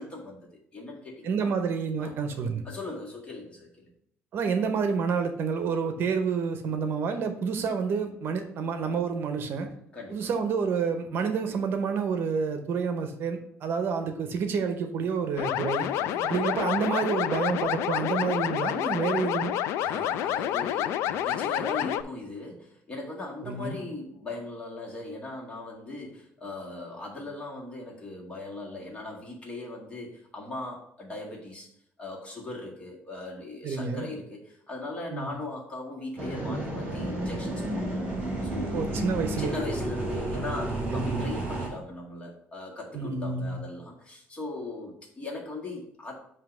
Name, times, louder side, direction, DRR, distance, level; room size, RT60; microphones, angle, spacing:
voice 1, 0.0-1.5 2.0-2.1 2.6-3.9 9.9-10.3 15.9-16.3 19.8-31.7 32.0-38.9 39.4-46.1, left 2 dB, 25° left, -2 dB, 1.8 m, -39 dB
voice 2, 1.2-2.6 4.3-9.7 10.1-15.9 16.2-19.5 23.4-23.8 33.6-34.1 35.1-35.3 38.7-39.5 40.9-41.3 42.9-43.6, right 5 dB, 55° right, 7 dB, 0.8 m, -29 dB
sound 1, 15.4-22.0, left 11 dB, 85° left, 0.3 m, -28 dB
sound 2, 36.2-41.7, right 1 dB, 25° right, 2.5 m, -31 dB
7.4 x 2.8 x 5.9 m, 0.71 s
cardioid pair, 140°, 5 cm